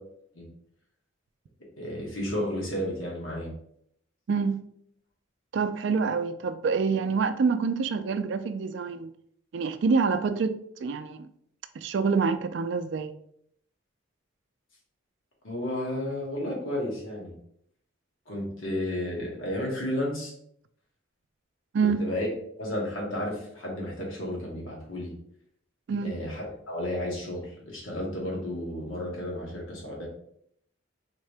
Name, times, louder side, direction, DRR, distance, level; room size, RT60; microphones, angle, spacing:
voice 1, 1.8-3.5 15.4-17.3 18.3-20.3 22.0-22.3 22.6-25.1 26.0-30.1, left 1 dB, 80° left, 1.6 m, -32 dB
voice 2, 4.3-4.6 5.5-9.1 9.5-11.3 11.8-13.1 21.7-22.0 25.9-26.2, right 5 dB, 60° right, 0.3 m, -26 dB
3.7 x 3.6 x 3.3 m
head